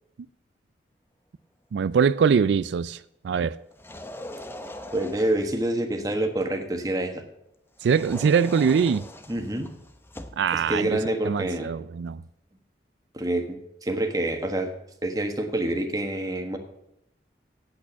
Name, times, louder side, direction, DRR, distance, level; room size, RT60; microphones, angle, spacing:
voice 1, 1.7-3.6 7.8-9.0 10.4-11.0 11.2-12.2, right 6 dB, 85° right, 0.3 m, -23 dB
sound 1, 3.7-5.6 7.8-10.5, left 1 dB, 15° left, 0.6 m, -41 dB
voice 2, 4.9-7.2 9.3-9.7 10.5-11.7 13.1-14.7 15.0-16.6, right 1 dB, 20° right, 1.3 m, -27 dB
8.6 x 8.5 x 6.9 m
head